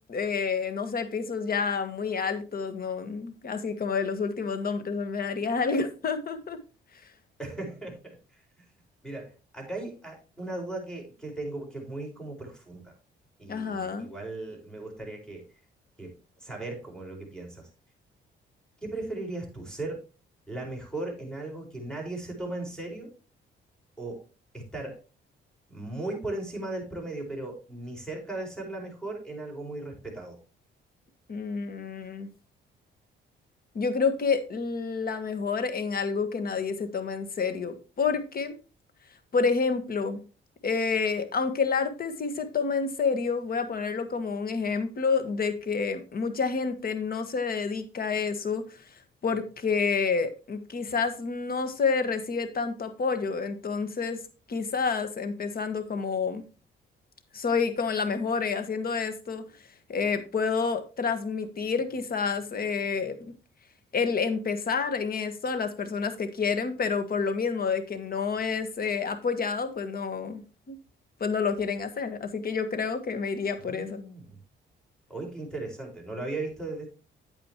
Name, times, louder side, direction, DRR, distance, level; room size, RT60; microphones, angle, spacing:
voice 1, 0.1-6.6 13.5-14.1 31.3-32.3 33.7-38.6 39.3-40.2 40.6-48.6 49.2-54.2 54.5-56.4 57.3-59.4 59.9-63.1 63.9-70.4 70.7-70.8 71.2-74.0, left 5 dB, 50° left, 9 dB, 1.6 m, -29 dB
voice 2, 7.4-8.6 9.0-12.9 13.4-15.5 16.0-16.1 16.4-17.7 18.8-20.0 20.5-23.1 24.0-24.2 24.5-25.0 25.7-30.4 73.6-74.4 75.1-76.9, right 2 dB, 5° left, 1 dB, 5.0 m, -37 dB
9.2 x 8.9 x 3.0 m, 0.33 s
cardioid pair, 90°, 20 cm